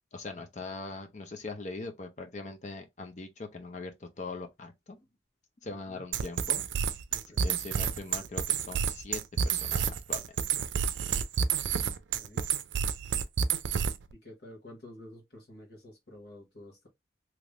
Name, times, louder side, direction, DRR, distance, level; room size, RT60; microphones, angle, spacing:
voice 1, 0.1-5.0 5.6-7.0 7.4-10.2 10.6-10.7, left 3 dB, 40° left, 0.6 m, -41 dB
sound 1, 6.1-14.1, right 7 dB, 90° right, 0.4 m, -29 dB
voice 2, 7.1-7.5 12.2-12.4 14.2-16.9, left 1 dB, 60° left, 1.4 m, -50 dB
3.4 x 3.0 x 2.4 m
head